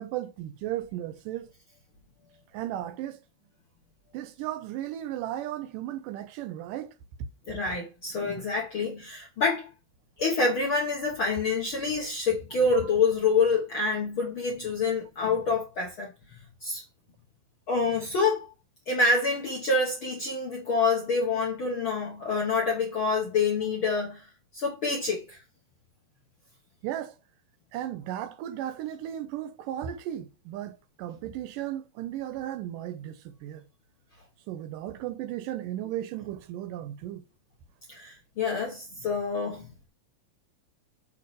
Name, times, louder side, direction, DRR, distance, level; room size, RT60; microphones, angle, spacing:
voice 1, 0.0-1.5 2.5-3.2 4.1-6.9 26.8-27.1 27.7-33.6 34.5-37.2, right 12 dB, 85° right, 2.3 m, -35 dB
voice 2, 7.5-9.7 10.2-16.1 16.6-16.8 17.7-18.5 18.9-24.3 24.5-25.4 37.9-39.7, left 4 dB, 50° left, 1.7 m, -27 dB
8.7 x 3.5 x 5.0 m
omnidirectional pair, 3.9 m